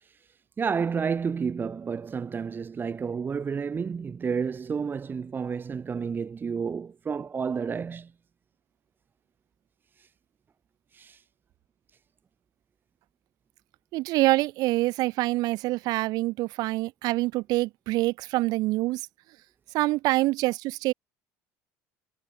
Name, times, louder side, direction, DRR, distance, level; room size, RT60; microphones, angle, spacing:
voice 1, 0.6-8.1 10.9-11.2, right 6 dB, 30° right, 1.6 m, -30 dB
voice 2, 13.9-19.1 19.7-20.9, right 19 dB, 65° right, 3.7 m, -26 dB
supercardioid pair, 90°, 7 cm